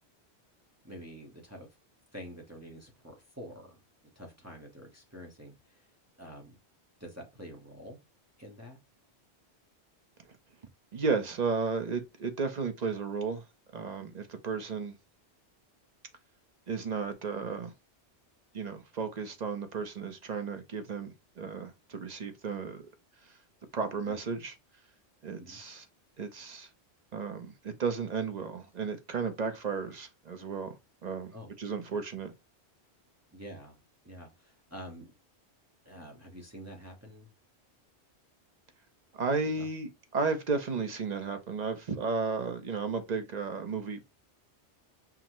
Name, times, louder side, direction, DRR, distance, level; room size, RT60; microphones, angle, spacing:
voice 1, 0.8-1.7 2.1-3.8 4.2-5.9 6.2-6.6 7.0-8.0 8.4-8.8 24.0-24.1 25.4-25.6 31.3-31.5 33.3-33.8 34.0-35.1 35.8-37.3 39.6-39.7, equal, 15° right, 0.8 m, -47 dB
voice 2, 10.9-13.4 13.7-14.9 16.7-17.7 18.5-22.8 23.7-24.5 25.2-25.9 26.2-26.7 27.1-30.8 31.0-31.3 31.6-32.3 39.2-44.0, right 4 dB, 45° right, 0.7 m, -33 dB
5.8 x 2.1 x 2.9 m
omnidirectional pair, 1.1 m